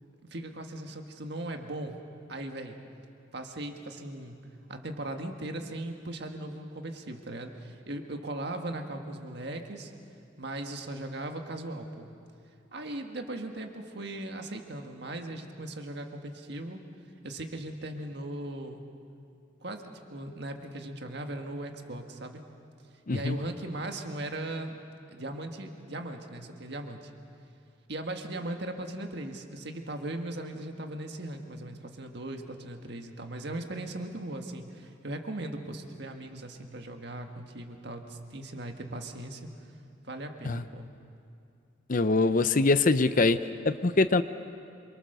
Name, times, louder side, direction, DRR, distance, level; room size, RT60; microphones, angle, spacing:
voice 1, 0.3-2.0 2.3-2.8 3.3-4.4 4.7-9.9 10.4-12.1 12.7-16.8 17.2-18.8 19.6-22.4 23.1-24.8 25.1-27.1 27.9-39.5 40.0-40.9, right 1 dB, 55° right, 4 dB, 1.7 m, -38 dB
voice 2, 41.9-43.4 43.6-44.2, left 3 dB, 40° left, 12 dB, 0.6 m, -23 dB
26.5 x 24.0 x 6.8 m, 2.5 s
head